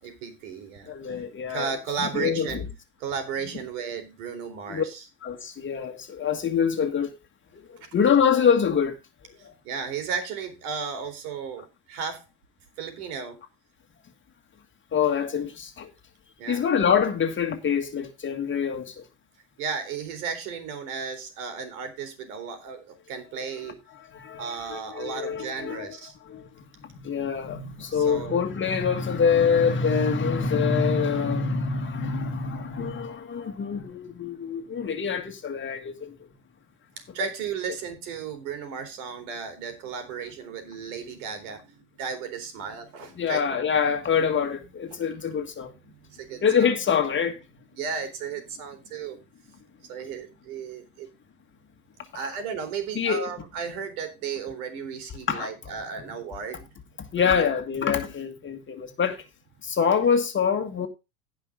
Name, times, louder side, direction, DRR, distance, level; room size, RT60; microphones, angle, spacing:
voice 1, 0.0-0.9 1.5-2.6 3.0-5.0 9.6-12.2 12.8-13.4 16.4-16.6 19.6-23.8 24.4-26.1 27.9-28.4 37.0-43.7 44.9-45.3 45.9-47.1 47.8-49.2 49.9-51.1 52.1-56.8 57.2-57.5, right 6 dB, 65° right, 4.1 m, -34 dB
voice 2, 0.9-1.7 2.0-2.6 4.7-4.8 5.2-7.2 7.5-9.0 9.4-9.5 14.9-15.9 16.5-19.0 24.0-26.0 26.3-26.5 26.8-36.1 43.2-45.7 46.4-47.4 52.2-52.3 53.0-53.3 55.3-55.5 57.1-59.2 59.6-60.9, left 6 dB, 25° left, 1.8 m, -25 dB
16.5 x 5.8 x 3.8 m
hypercardioid pair, 110°, 46 cm